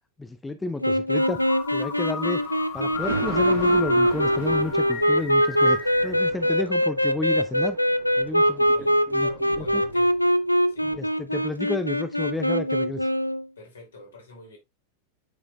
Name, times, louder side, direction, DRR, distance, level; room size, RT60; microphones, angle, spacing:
voice 1, 0.2-1.4 1.7-2.4 2.7-7.8 8.2-8.6 9.1-9.3 9.6-9.8 10.8-13.1, left 2 dB, 10° left, 0.5 m, -31 dB
sound 1, 0.8-13.4, equal, 85° left, 0.4 m, -23 dB
sound 2, 1.2-6.2, left 8 dB, 45° left, 1.0 m, -36 dB
Thunder, 2.2-10.5 10.9-11.0, right 6 dB, 65° right, 1.4 m, -39 dB
voice 2, 8.4-10.1 10.7-10.9 13.6-14.6, left 3 dB, 70° left, 2.8 m, -46 dB
8.3 x 5.0 x 2.3 m
figure-of-eight pair, 90°, 0 cm